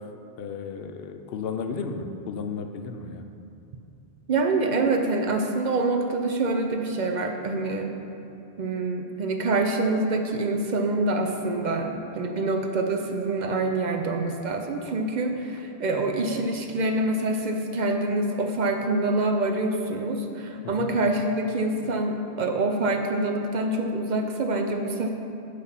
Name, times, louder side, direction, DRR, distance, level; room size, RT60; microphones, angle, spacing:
voice 1, 0.4-3.2 20.6-20.9, left 5 dB, 70° left, 6 dB, 0.8 m, -33 dB
voice 2, 4.3-7.9 8.6-25.1, right 2 dB, 55° right, 3 dB, 0.6 m, -26 dB
9.6 x 3.3 x 5.7 m, 2.8 s
omnidirectional pair, 1.1 m